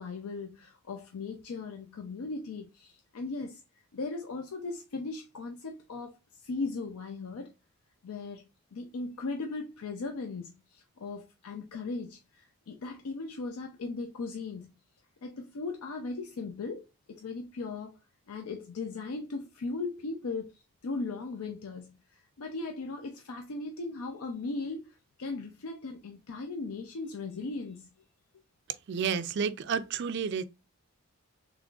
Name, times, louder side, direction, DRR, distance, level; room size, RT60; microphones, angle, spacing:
voice 1, 0.0-3.6 3.9-7.5 8.0-8.4 8.7-14.7 15.2-18.0 18.3-27.9, left 3 dB, 85° left, 0.5 m, -38 dB
voice 2, 28.9-30.4, right 6 dB, 50° right, 0.4 m, -30 dB
3.7 x 3.4 x 2.3 m
head